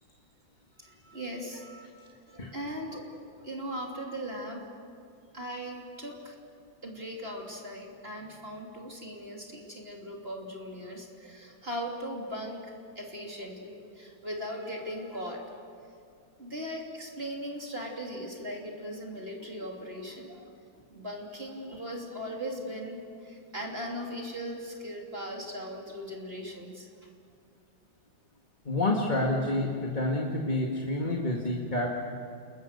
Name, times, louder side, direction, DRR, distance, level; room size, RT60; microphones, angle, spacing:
voice 1, 0.8-4.9 5.3-6.4 6.8-15.6 16.4-20.5 20.9-27.1, equal, 30° right, 0 dB, 3.1 m, -39 dB
voice 2, 28.7-31.9, left 2 dB, 25° left, -1 dB, 1.9 m, -28 dB
29.5 x 21.5 x 6.6 m, 2.4 s
omnidirectional pair, 2.2 m